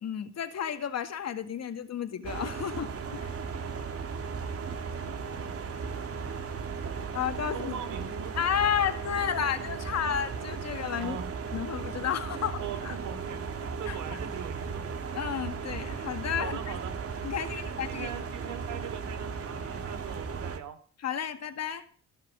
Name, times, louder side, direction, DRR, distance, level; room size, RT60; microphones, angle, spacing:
voice 1, 0.0-3.4 7.1-7.7 8.4-11.2 11.5-13.0 13.9-14.0 15.1-16.8 17.2-18.1 21.0-21.8, left 8 dB, 60° left, 8 dB, 2.1 m, -32 dB
sound 1, 2.2-20.6, right 5 dB, 50° right, 2.4 m, -36 dB
voice 2, 7.5-8.3 11.0-11.3 12.3-14.8 16.4-16.9 17.5-20.8, right 7 dB, 75° right, 7 dB, 3.8 m, -41 dB
17.0 x 6.6 x 8.6 m, 0.43 s
cardioid pair, 90°, 30 cm